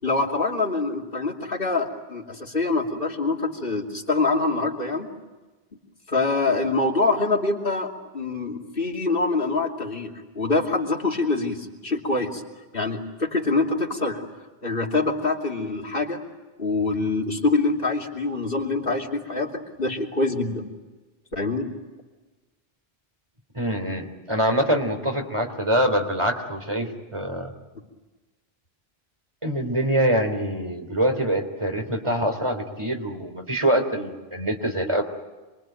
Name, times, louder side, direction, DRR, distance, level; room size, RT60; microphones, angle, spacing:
voice 1, 0.0-5.1 6.1-12.4 12.7-14.2 14.6-16.2 16.6-20.7 21.3-21.7, left 3 dB, 60° left, 1 dB, 3.1 m, -25 dB
voice 2, 23.5-27.5 29.4-35.0, equal, 30° right, 4 dB, 3.4 m, -24 dB
27.5 x 23.0 x 9.2 m, 1.2 s
omnidirectional pair, 1.1 m